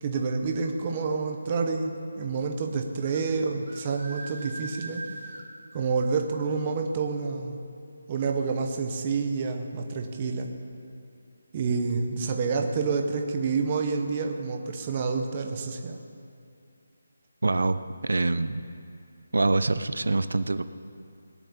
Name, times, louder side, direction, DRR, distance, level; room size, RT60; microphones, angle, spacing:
voice 1, 0.0-5.0 5.7-7.6 8.1-10.5 11.5-16.0, right 4 dB, 20° right, 3 dB, 0.8 m, -28 dB
sound 1, 3.0-3.2 3.7-5.4, right 2 dB, 40° right, 2.4 m, -40 dB
voice 2, 17.4-18.6 19.3-20.6, right 3 dB, 80° right, 12 dB, 0.7 m, -25 dB
19.5 x 7.1 x 8.7 m, 2.5 s
hypercardioid pair, 180°, 0 cm